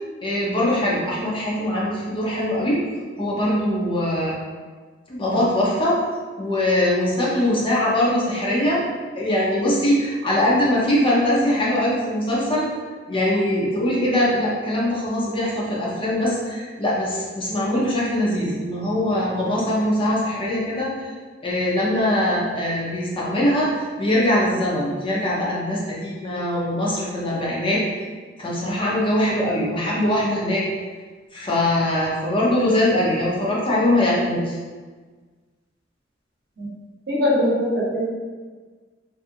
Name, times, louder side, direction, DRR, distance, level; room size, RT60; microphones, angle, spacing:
voice 1, 0.2-2.8 3.2-4.4 5.1-6.0 6.4-8.8 9.2-12.7 13.1-21.1 21.4-23.7 24.0-27.8 28.4-30.6 31.3-34.5, left 1 dB, 30° left, -5 dB, 0.6 m, -22 dB
voice 2, 37.1-38.1, left 1 dB, 60° right, -5 dB, 0.8 m, -21 dB
2.7 x 2.4 x 2.5 m, 1.4 s
head